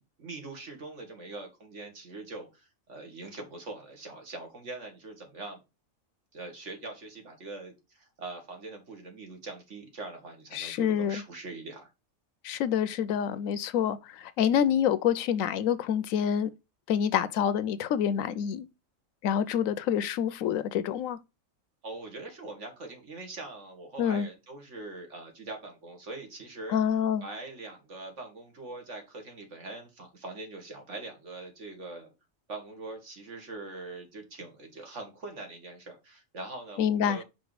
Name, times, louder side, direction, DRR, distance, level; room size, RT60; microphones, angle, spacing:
voice 1, 0.2-5.6 6.3-11.9 21.8-26.8 27.2-32.1 32.5-37.2, right 2 dB, 60° right, 2.0 m, -42 dB
voice 2, 10.5-11.2 12.4-16.5 16.9-18.7 19.2-21.2 24.0-24.3 26.7-27.2 36.8-37.2, left 8 dB, 80° left, 1.0 m, -27 dB
5.2 x 4.5 x 4.7 m
omnidirectional pair, 1.4 m